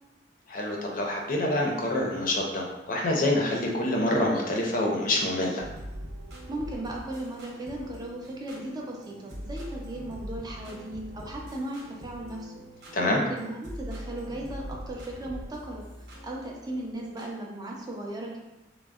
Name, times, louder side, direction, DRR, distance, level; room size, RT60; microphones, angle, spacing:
voice 1, 0.5-5.6 12.9-13.2, left 1 dB, 50° left, 0 dB, 0.5 m, -26 dB
sound 1, 5.6-17.3, equal, 65° right, 0.7 m, -42 dB
voice 2, 6.5-12.5 13.1-15.8 16.2-18.4, right 1 dB, 25° right, -1 dB, 0.4 m, -36 dB
3.5 x 2.0 x 2.3 m, 0.99 s
head